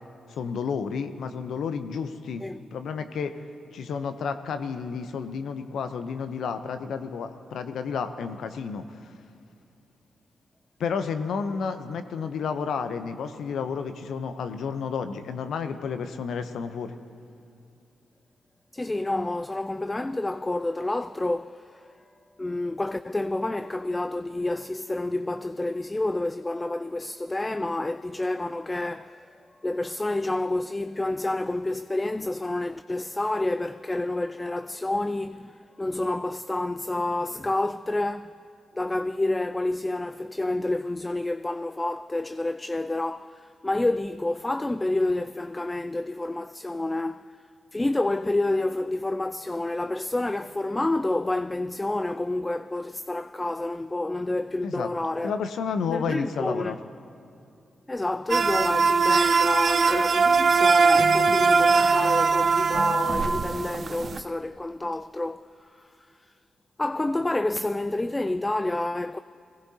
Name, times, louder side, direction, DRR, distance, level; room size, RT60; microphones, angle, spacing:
voice 1, 0.3-2.5 2.7-3.3 3.7-9.1 10.8-16.9 54.6-54.9 55.2-56.8, left 6 dB, 75° left, 0.7 m, -31 dB
voice 2, 18.7-21.9 22.4-29.3 29.6-38.4 38.7-47.4 47.7-55.4 55.9-56.7 57.9-66.3 66.8-69.2, left 2 dB, 25° left, 0.3 m, -29 dB
sound 1, 58.3-64.2, right 4 dB, 55° right, 0.5 m, -21 dB
21.5 x 18.0 x 2.8 m
hypercardioid pair, 40°, 0 cm